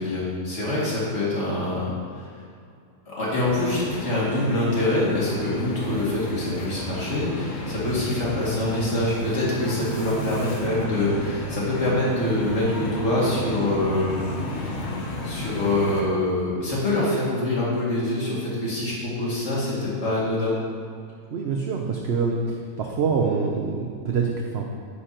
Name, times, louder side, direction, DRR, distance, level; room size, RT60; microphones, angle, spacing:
voice 1, 0.0-2.3 3.1-14.2 15.2-20.6, left 1 dB, 45° left, -7 dB, 2.6 m, -25 dB
sound 1, 3.4-16.0, left 1 dB, 65° left, 1.5 m, -32 dB
voice 2, 21.3-22.4 22.8-24.7, right 5 dB, 55° right, 0 dB, 0.8 m, -25 dB
10.0 x 9.5 x 2.9 m, 2.3 s
omnidirectional pair, 1.6 m